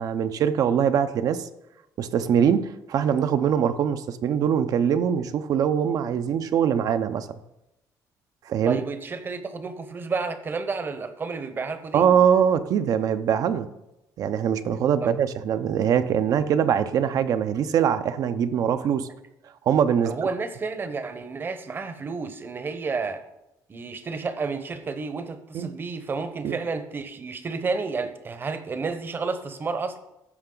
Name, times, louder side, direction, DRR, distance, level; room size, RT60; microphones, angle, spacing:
voice 1, 0.0-1.5 2.0-7.4 8.5-8.8 11.9-13.7 14.2-19.1 19.7-20.1 25.5-25.7 26.4-26.6, right 8 dB, 55° right, 10 dB, 0.6 m, -23 dB
voice 2, 8.6-12.1 15.0-15.1 20.0-23.2 23.7-30.0, right 4 dB, 30° right, 10 dB, 0.9 m, -31 dB
14.5 x 5.6 x 3.9 m, 0.89 s
cardioid pair, 135°, 7 cm